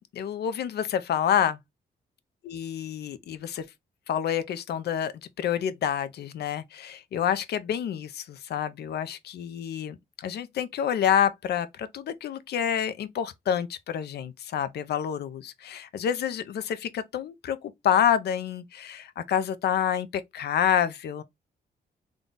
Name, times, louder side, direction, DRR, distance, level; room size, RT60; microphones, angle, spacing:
voice 1, 0.1-1.6 2.5-3.6 4.1-21.2, left 9 dB, 75° left, 0.6 m, -28 dB
3.8 x 2.3 x 3.8 m
cardioid pair, 125°, 17 cm